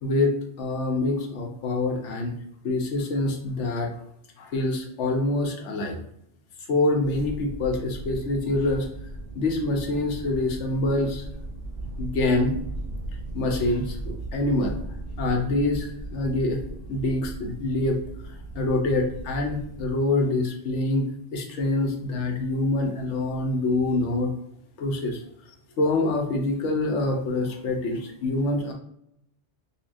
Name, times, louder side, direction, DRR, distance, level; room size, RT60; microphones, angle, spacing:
voice 1, 0.0-2.3 2.6-3.9 4.4-6.0 6.7-8.9 9.3-11.2 12.0-12.5 13.3-14.7 15.2-16.6 16.9-21.0 21.3-24.3 24.8-25.2 25.8-28.7, left 2 dB, 85° left, 2 dB, 1.1 m, -25 dB
sound 1, 7.0-19.9, right 2 dB, 55° right, 0.4 m, -37 dB
5.4 x 2.3 x 2.5 m, 0.75 s
omnidirectional pair, 1.2 m